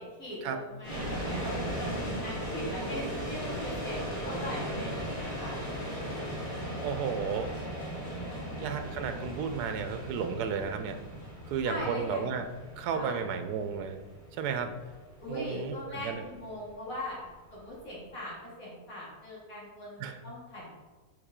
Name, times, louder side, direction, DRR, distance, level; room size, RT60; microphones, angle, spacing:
voice 1, 0.0-5.6 6.1-7.2 8.3-8.9 11.6-12.3 12.9-13.2 15.2-17.2 17.5-20.8, equal, 60° left, -6 dB, 2.4 m, -41 dB
sound 1, 0.8-17.8, equal, 30° left, 1.8 m, -37 dB
voice 2, 6.8-7.5 8.6-11.0 11.5-12.5 12.8-14.0 14.4-14.7 15.3-16.3 20.0-20.2, right 6 dB, 85° right, 8 dB, 1.1 m, -33 dB
5.5 x 4.9 x 3.6 m, 1.3 s
omnidirectional pair, 1.7 m